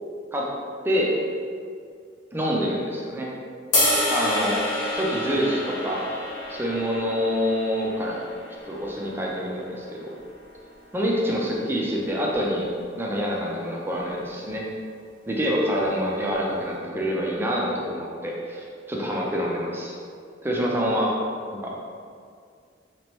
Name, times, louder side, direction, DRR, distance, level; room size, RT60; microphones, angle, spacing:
voice 1, 2.3-3.3 4.1-4.6 4.9-6.0 6.5-8.2 8.6-10.1 10.9-12.7 12.9-14.6 15.3-19.9 20.4-21.1 21.6-21.7, equal, 10° right, -3 dB, 0.5 m, -26 dB
sound 1, 3.7-10.0, left 1 dB, 85° left, 1.2 m, -28 dB
3.3 x 3.1 x 3.0 m, 2.2 s
head